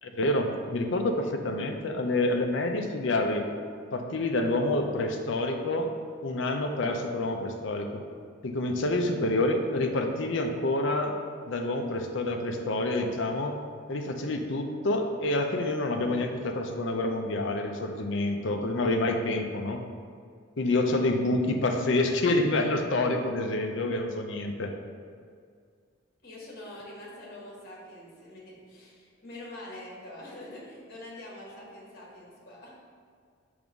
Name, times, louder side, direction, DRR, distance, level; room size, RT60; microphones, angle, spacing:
voice 1, 0.0-3.4 3.9-5.9 6.2-8.0 8.4-11.1 11.5-13.6 13.9-19.8 20.6-24.7, left 2 dB, 65° left, 4 dB, 0.6 m, -28 dB
voice 2, 26.2-32.8, left 1 dB, 50° left, -4 dB, 1.3 m, -45 dB
5.4 x 3.5 x 5.1 m, 2.1 s
head